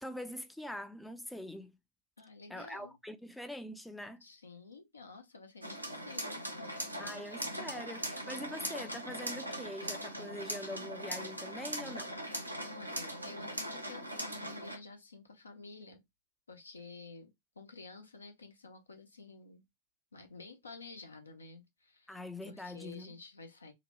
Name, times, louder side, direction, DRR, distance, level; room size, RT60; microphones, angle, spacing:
voice 1, 0.0-1.8 2.5-4.2 7.0-12.1 22.1-23.1, left 1 dB, 5° left, 0.4 m, -43 dB
voice 2, 2.2-3.0 4.2-7.3 8.2-8.7 12.6-16.0 16.5-19.6 20.1-23.7, left 3 dB, 75° left, 0.7 m, -51 dB
sound 1, 5.6-14.8, right 1 dB, 85° right, 0.6 m, -40 dB
2.8 x 2.1 x 3.0 m
figure-of-eight pair, 90°, 0 cm